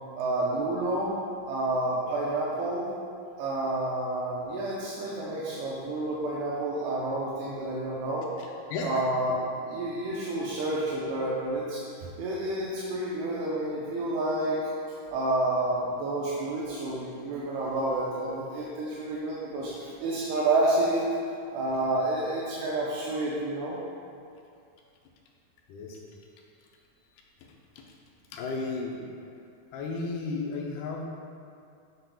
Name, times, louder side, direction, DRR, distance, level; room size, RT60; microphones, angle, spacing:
voice 1, 0.2-1.1 1.5-2.9 3.4-8.3 8.8-11.8 12.2-14.6 15.1-21.1 21.5-23.8, right 2 dB, 80° right, -6 dB, 2.9 m, -29 dB
voice 2, 8.4-8.9 25.7-26.0 27.4-27.5 28.3-29.0 29.7-31.0, left 3 dB, 80° left, -1 dB, 2.5 m, -34 dB
7.8 x 7.6 x 2.3 m, 2.4 s
omnidirectional pair, 4.6 m